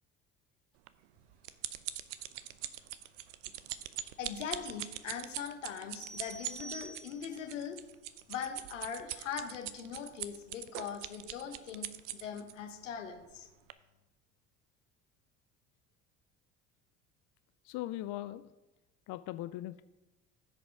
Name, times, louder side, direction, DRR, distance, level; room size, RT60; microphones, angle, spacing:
sound 1, 0.9-12.5 13.2-13.4 13.7-13.8, right 13 dB, 80° right, 0.6 m, -42 dB
voice 1, 4.2-7.8 8.3-13.5, left 7 dB, 90° left, 5 dB, 1.1 m, -41 dB
sound 2, 6.0-7.5, right 3 dB, 40° right, 0.9 m, -47 dB
voice 2, 17.6-18.5 19.1-19.8, left 15 dB, 55° left, 12 dB, 0.5 m, -39 dB
14.0 x 5.1 x 4.7 m, 1.1 s
hypercardioid pair, 60°, 36 cm